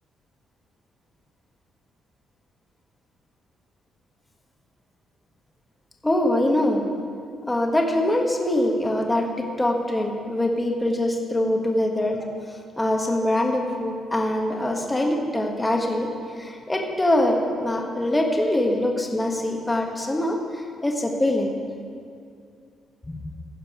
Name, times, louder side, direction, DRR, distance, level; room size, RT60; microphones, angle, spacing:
voice 1, 6.0-6.8 7.5-12.2 12.8-16.1 16.4-21.5 23.1-23.2, left 1 dB, 15° left, 1 dB, 1.2 m, -23 dB
15.5 x 5.2 x 4.9 m, 2.4 s
cardioid pair, 90°, 0 cm